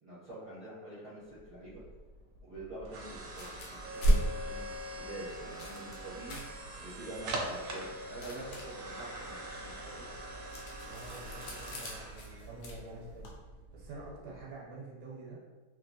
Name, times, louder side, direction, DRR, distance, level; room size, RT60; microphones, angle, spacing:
voice 1, 0.0-1.8 2.5-4.7 5.0-6.4 6.8-10.0 14.2-14.3, right 1 dB, 25° right, -12 dB, 0.8 m, -46 dB
sound 1, 1.4-14.4, right 1 dB, 70° right, 0.9 m, -43 dB
sound 2, 3.2-13.4, right 1 dB, 80° left, 1.2 m, -37 dB
voice 2, 10.8-13.3 13.7-15.4, right 2 dB, 85° right, -4 dB, 1.3 m, -47 dB
2.9 x 2.7 x 2.7 m, 1.3 s
omnidirectional pair, 1.7 m